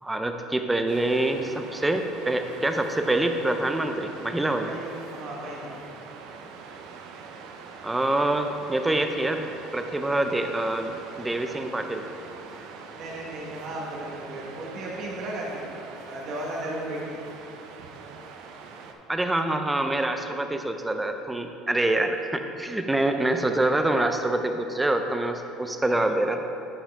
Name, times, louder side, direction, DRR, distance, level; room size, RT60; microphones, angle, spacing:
voice 1, 0.0-4.7 7.8-9.5 9.7-12.1 19.1-26.4, right 2 dB, 10° right, 6 dB, 0.4 m, -26 dB
Waves surf, 0.9-18.9, right 5 dB, 70° right, 0.6 m, -43 dB
voice 2, 4.5-5.8 12.9-17.2, right 1 dB, 45° right, -3 dB, 1.5 m, -35 dB
9.9 x 5.5 x 3.6 m, 2.9 s
cardioid pair, 160°, 0 cm